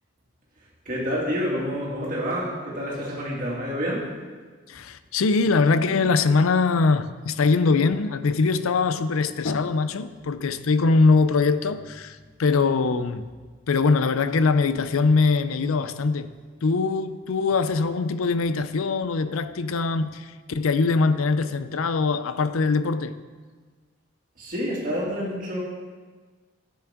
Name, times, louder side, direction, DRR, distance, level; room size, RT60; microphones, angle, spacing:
voice 1, 0.9-4.1 24.4-25.6, equal, 40° right, 2.4 m, -28 dB
voice 2, 4.7-13.2 13.7-16.3 16.6-23.1, left 4 dB, 85° left, 0.5 m, -22 dB
13.0 x 7.3 x 3.7 m
head